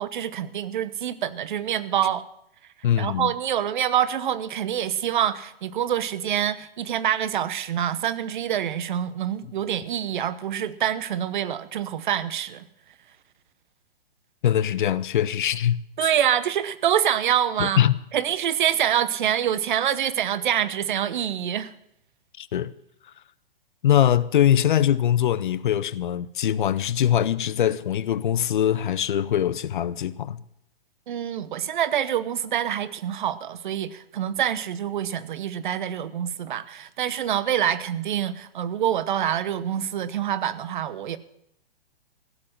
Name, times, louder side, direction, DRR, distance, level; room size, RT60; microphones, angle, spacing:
voice 1, 0.0-2.2 3.0-12.6 16.0-17.8 18.1-21.7 31.1-41.2, right 10 dB, 55° right, 1.0 m, -26 dB
voice 2, 2.8-3.3 14.4-15.8 17.6-18.0 22.4-22.7 23.8-30.4, left 10 dB, 55° left, 0.6 m, -22 dB
16.0 x 7.7 x 7.7 m
figure-of-eight pair, 115°, 30 cm